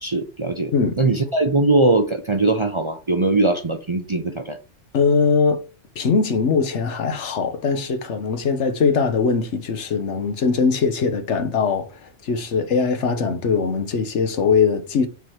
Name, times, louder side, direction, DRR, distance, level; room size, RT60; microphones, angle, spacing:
voice 1, 0.0-4.6, right 2 dB, 30° right, 0.6 m, -21 dB
voice 2, 4.9-5.6 6.0-15.1, left 5 dB, 70° left, 1.2 m, -21 dB
7.1 x 4.1 x 4.5 m
omnidirectional pair, 1.2 m